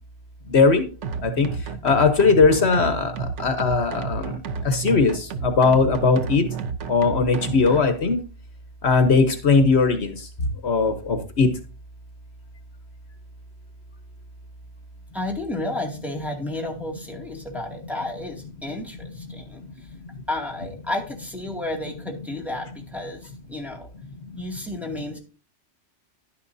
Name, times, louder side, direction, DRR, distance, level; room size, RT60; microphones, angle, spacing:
voice 1, 0.5-0.8 1.2-1.5 1.8-3.1 3.4-4.3 4.6-6.4 6.9-8.2 8.8-10.1 10.6-11.5, left 4 dB, 65° left, 8 dB, 1.3 m, -19 dB
sound 1, 1.0-7.8, right 5 dB, 90° right, 1.2 m, -31 dB
voice 2, 15.1-19.6 20.3-23.9 24.3-25.2, left 1 dB, ahead, -1 dB, 2.2 m, -32 dB
11.0 x 10.5 x 2.7 m, 0.35 s
omnidirectional pair, 1.2 m